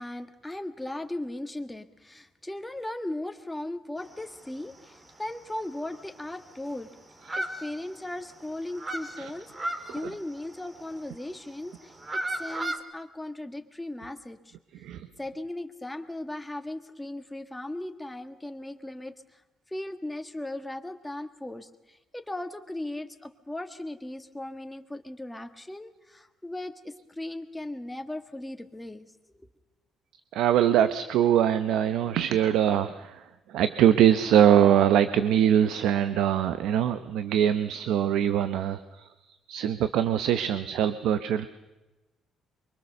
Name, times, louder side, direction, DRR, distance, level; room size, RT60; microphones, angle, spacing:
voice 1, 0.0-6.9 7.3-14.6 15.2-19.4 19.7-29.5, left 1 dB, 10° left, 7 dB, 1.6 m, -37 dB
sound 1, 4.0-4.7 5.0-5.1 5.5-5.6 5.8-6.8 7.2-8.3 8.5-11.0 11.7-12.8, right 1 dB, 20° right, 2.3 m, -35 dB
voice 2, 30.3-33.2 33.5-39.1 39.5-41.5, right 10 dB, 80° right, 11 dB, 0.9 m, -23 dB
24.0 x 23.5 x 6.8 m, 1.1 s
cardioid pair, 115°, 0 cm